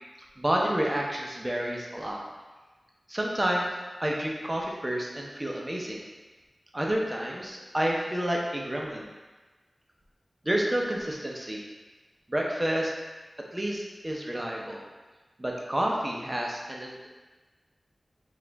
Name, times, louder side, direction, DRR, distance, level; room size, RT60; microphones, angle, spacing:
voice 1, 0.4-2.2 3.1-3.7 4.0-6.0 6.7-9.1 10.4-11.6 12.3-12.9 13.5-14.8 15.4-17.1, right 1 dB, 20° right, -1 dB, 0.6 m, -29 dB
4.9 x 2.4 x 3.4 m, 1.2 s
wide cardioid pair, 80°, 0 cm